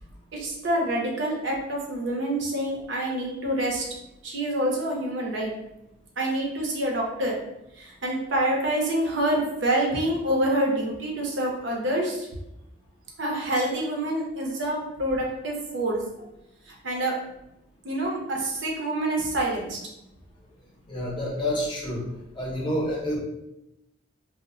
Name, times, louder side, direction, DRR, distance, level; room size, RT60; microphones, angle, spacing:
voice 1, 0.3-3.8 4.2-5.5 6.2-7.4 7.8-12.3 13.2-16.0 16.7-17.2 17.8-19.8, right 1 dB, 70° right, -1 dB, 0.6 m, -27 dB
voice 2, 20.9-22.0 22.3-23.2, left 1 dB, 25° left, -3 dB, 0.6 m, -28 dB
2.1 x 2.0 x 3.6 m, 0.86 s
head